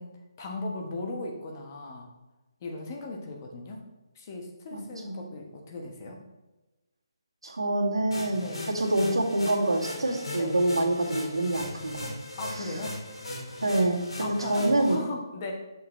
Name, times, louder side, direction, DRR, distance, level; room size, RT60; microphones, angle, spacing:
voice 1, 0.0-2.1 2.6-3.8 4.1-6.2 8.3-8.7 10.4-10.6 12.4-13.0 14.2-15.5, left 2 dB, 35° left, 1 dB, 1.2 m, -37 dB
voice 2, 4.7-5.2 7.4-12.1 12.5-12.7 13.6-15.0, right 1 dB, 80° right, -3 dB, 1.9 m, -26 dB
sound 1, 8.1-15.0, left 2 dB, 80° left, 2.1 m, -38 dB
6.8 x 6.4 x 3.2 m, 1.1 s
figure-of-eight pair, 155°, 3 cm